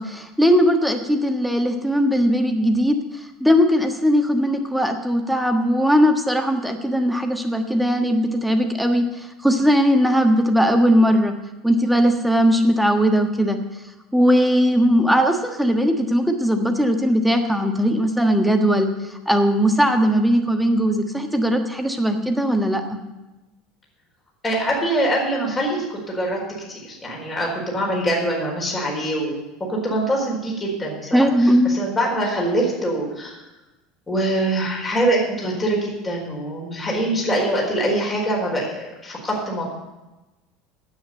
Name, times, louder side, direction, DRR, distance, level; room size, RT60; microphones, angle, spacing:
voice 1, 0.0-3.0 3.4-11.3 11.6-13.6 14.1-23.0 31.1-31.7, equal, ahead, 5 dB, 1.4 m, -19 dB
voice 2, 24.4-26.4 26.7-29.4 29.7-33.3 34.1-39.6, right 1 dB, 20° left, -2 dB, 4.5 m, -24 dB
9.3 x 8.6 x 8.1 m, 1.1 s
figure-of-eight pair, 70°, 0 cm